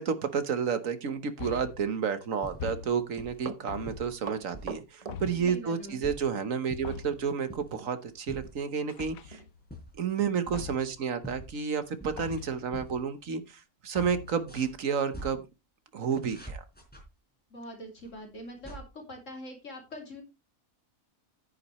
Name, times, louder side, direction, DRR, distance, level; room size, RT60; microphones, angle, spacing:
voice 1, 0.0-9.4 10.0-15.4 15.9-16.6, right 6 dB, 65° right, 10 dB, 1.5 m, -31 dB
sound 1, 1.4-1.9 2.6-3.2 3.7-4.3 5.1-5.6 6.8-7.3 8.9-9.7 10.5-11.0 12.2-12.7 14.0-14.5, left 8 dB, 75° left, 1.1 m, -41 dB
sound 2, 2.4-2.8 3.1-3.5 3.9-4.8 5.1-6.3 6.7-7.1 7.5-7.8 8.1-8.6 9.0-9.2 9.6-10.9 11.2-12.4 12.7-13.0 13.3-13.4 14.2-15.3 16.1-17.0 18.0-18.8, right 1 dB, 5° left, 4.1 m, -44 dB
Run, 3.4-6.0 6.3-6.5 7.7-7.9 8.3-8.4 8.9-9.0 9.3-9.5 10.0-10.1, right 5 dB, 35° right, 0.6 m, -42 dB
voice 2, 5.3-6.1 17.5-20.2, equal, 55° left, 2 dB, 3.1 m, -43 dB
10.0 x 9.6 x 3.1 m, 0.25 s
omnidirectional pair, 1.5 m